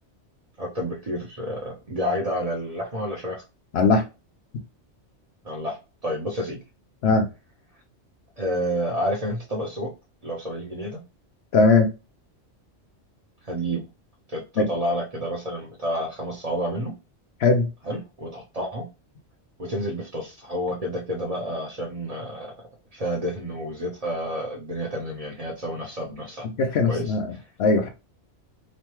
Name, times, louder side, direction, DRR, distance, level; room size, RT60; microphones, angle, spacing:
voice 1, 0.6-3.4 5.4-5.8 6.0-6.6 8.4-9.9 10.2-11.0 13.5-13.9 14.3-16.9 17.8-18.8 19.6-26.5 26.9-27.4, equal, 40° right, 0.7 m, -30 dB
voice 2, 3.7-4.0 7.0-7.3 11.5-11.9 14.6-14.7 17.4-17.7 26.6-27.3 27.6-27.9, left 3 dB, 65° left, 0.9 m, -19 dB
3.1 x 2.1 x 2.9 m
omnidirectional pair, 1.2 m